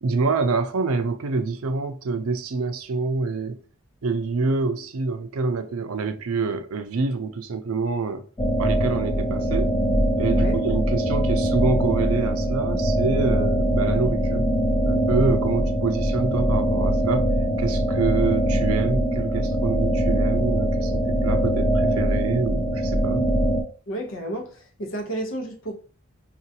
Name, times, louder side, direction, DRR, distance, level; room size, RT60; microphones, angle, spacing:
voice 1, 0.0-3.6 4.0-8.2 8.6-9.7 10.2-14.5 14.9-17.3 17.6-23.3, right 4 dB, 90° right, 0.5 m, -26 dB
sound 1, 8.4-23.6, right 1 dB, 15° left, 0.3 m, -22 dB
sound 2, 11.8-17.4, equal, 35° left, 0.8 m, -39 dB
voice 2, 23.9-25.7, right 1 dB, 65° left, 0.9 m, -31 dB
3.8 x 2.5 x 2.8 m
head